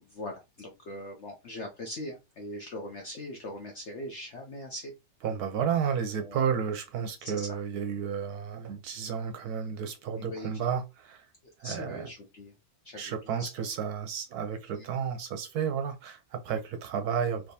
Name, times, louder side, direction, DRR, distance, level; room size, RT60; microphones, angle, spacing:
voice 1, 0.0-4.9 6.2-6.5 7.2-7.6 10.2-10.5 11.4-12.5 12.8-13.5 14.7-14.9, left 1 dB, 60° left, 0.7 m, -41 dB
voice 2, 5.2-11.3 11.6-12.1 13.0-17.5, right 7 dB, 70° right, 1.0 m, -32 dB
3.4 x 2.9 x 2.7 m
omnidirectional pair, 1.9 m